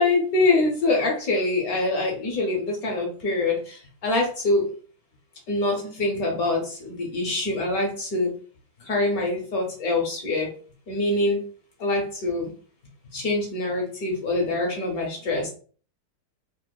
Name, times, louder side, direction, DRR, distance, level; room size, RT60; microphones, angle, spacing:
voice 1, 0.0-4.7 5.5-8.3 8.8-10.5 10.9-11.4 11.8-12.5 13.1-15.5, left 2 dB, 65° left, 0 dB, 0.9 m, -24 dB
3.5 x 2.8 x 2.3 m, 0.42 s
omnidirectional pair, 2.4 m